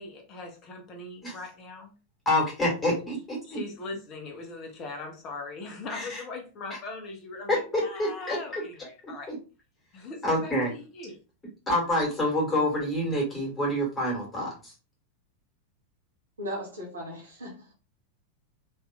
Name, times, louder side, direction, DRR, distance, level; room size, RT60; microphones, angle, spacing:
voice 1, 0.0-1.9 3.5-9.3 9.9-11.2, left 3 dB, 35° left, 3 dB, 0.9 m, -40 dB
voice 2, 2.3-3.6 5.9-6.2 7.5-8.6 9.0-9.4 10.2-10.7 11.7-14.7, left 1 dB, 20° left, -3 dB, 1.8 m, -27 dB
voice 3, 16.4-17.7, equal, 75° right, -3 dB, 1.0 m, -37 dB
3.3 x 2.9 x 2.4 m, 0.33 s
figure-of-eight pair, 90°, 0 cm